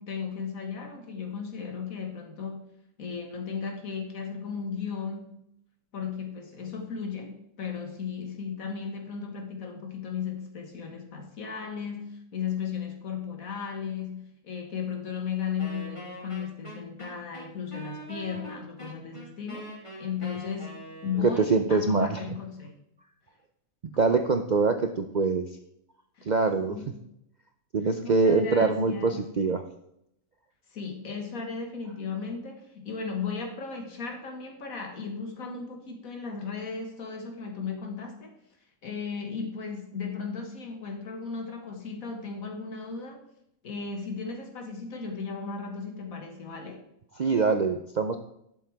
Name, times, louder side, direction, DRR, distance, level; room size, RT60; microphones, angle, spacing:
voice 1, 0.0-2.7 3.0-5.4 5.9-20.8 21.0-22.7 23.9-24.2 26.2-26.3 26.7-27.0 27.8-29.3 30.7-38.3 38.8-43.2 43.6-46.8, left 6 dB, 75° left, 4 dB, 2.0 m, -35 dB
Wind instrument woodwind instrument, 15.6-21.4, equal, 20° left, 2.7 m, -43 dB
voice 2, 21.2-22.2 24.0-25.5 26.3-26.8 27.7-29.6 47.2-48.2, right 4 dB, 55° right, 6 dB, 0.5 m, -24 dB
11.5 x 7.5 x 3.5 m, 0.77 s
omnidirectional pair, 1.5 m